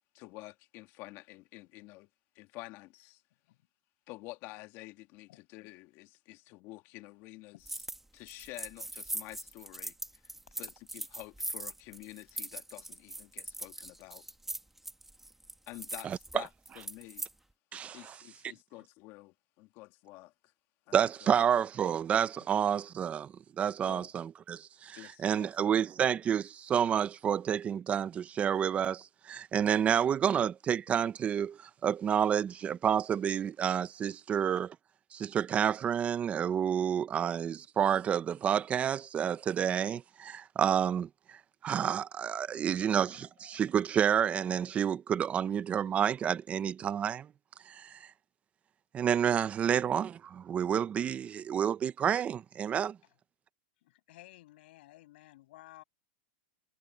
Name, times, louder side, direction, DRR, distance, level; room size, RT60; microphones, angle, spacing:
voice 1, 0.1-2.1 2.4-3.2 4.1-7.8 8.1-10.3 10.6-14.3 15.7-16.5 16.7-17.3 17.9-20.3 20.9-21.4 22.4-22.5 23.9-24.1 24.9-25.5, left 20 dB, 40° left, 2.1 m, -49 dB
sound 1, 7.6-8.0 8.3-17.3, right 1 dB, 5° right, 1.7 m, -41 dB
voice 2, 17.7-18.1 20.9-34.7 35.1-47.3 47.7-48.1 48.9-53.0, right 8 dB, 20° right, 0.8 m, -29 dB
voice 3, 53.8-55.8, left 17 dB, 65° left, 7.5 m, -55 dB
supercardioid pair, 145°, 6 cm